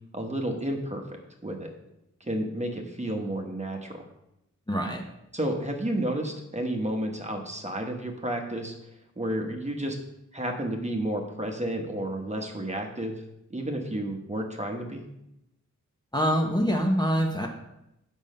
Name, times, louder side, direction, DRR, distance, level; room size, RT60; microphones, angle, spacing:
voice 1, 0.1-1.0 1.4-1.7 2.2-4.0 5.3-8.7 9.2-10.0 10.3-13.1 13.5-15.0, right 1 dB, 20° right, 2 dB, 1.1 m, -31 dB
voice 2, 4.7-5.1 16.1-17.5, equal, 15° left, 0 dB, 0.9 m, -25 dB
7.1 x 5.4 x 5.4 m, 0.85 s
wide cardioid pair, 100°, 31 cm